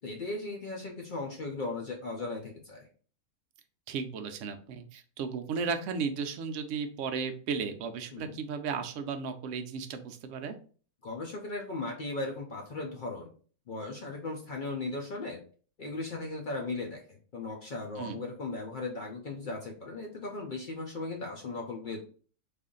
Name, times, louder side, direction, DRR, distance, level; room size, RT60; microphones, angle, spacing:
voice 1, 0.0-2.9 8.1-8.4 11.0-13.3 13.7-15.4 15.8-22.0, left 3 dB, 70° left, 1 dB, 0.4 m, -37 dB
voice 2, 3.9-10.6 18.0-18.2, right 5 dB, 70° right, 7 dB, 0.8 m, -35 dB
3.4 x 2.5 x 3.7 m, 0.41 s
omnidirectional pair, 1.6 m